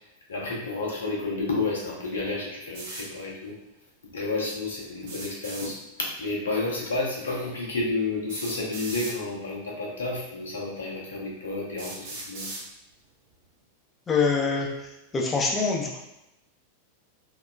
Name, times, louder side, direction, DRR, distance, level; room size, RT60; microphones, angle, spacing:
voice 1, 0.3-3.6 4.0-12.5, left 3 dB, 65° left, -3 dB, 0.6 m, -31 dB
sound 1, 2.7-3.1 5.0-5.7 7.2-7.3 8.3-9.2 10.2-10.3 10.9-11.0 11.8-12.6, right 2 dB, 50° right, 0.6 m, -38 dB
voice 2, 14.1-16.0, left 4 dB, 20° left, -2 dB, 0.5 m, -25 dB
2.8 x 2.1 x 2.3 m, 0.88 s
figure-of-eight pair, 90°, 0 cm